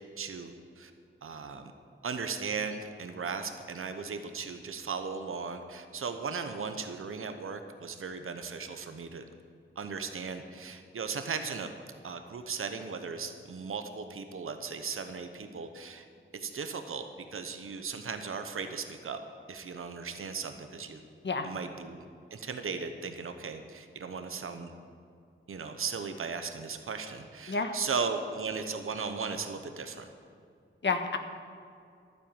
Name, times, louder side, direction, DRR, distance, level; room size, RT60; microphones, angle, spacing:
voice 1, 0.2-0.9 1.2-1.7 2.0-9.2 9.8-11.7 12.0-16.0 16.3-19.2 19.5-21.0 21.4-22.0 22.3-24.7 25.5-30.1, right 5 dB, 85° right, 7 dB, 0.9 m, -37 dB
voice 2, 30.8-31.2, left 4 dB, 60° left, 6 dB, 1.4 m, -29 dB
12.0 x 10.0 x 7.2 m, 2.4 s
wide cardioid pair, 65°, 21 cm